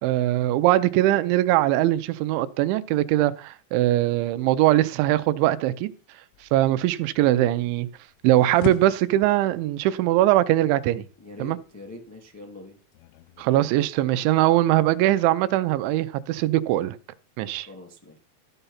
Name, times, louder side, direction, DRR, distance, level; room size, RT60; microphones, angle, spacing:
voice 1, 0.0-5.9 6.5-7.9 8.2-11.1 11.4-11.6 13.4-17.0 17.4-17.7, right 14 dB, 85° right, 3.0 m, -21 dB
sound 1, 6.3-13.9, left 14 dB, 90° left, 3.2 m, -41 dB
voice 2, 11.2-12.8 17.6-18.2, left 2 dB, 10° left, 0.6 m, -43 dB
14.5 x 6.8 x 5.7 m
omnidirectional pair, 5.3 m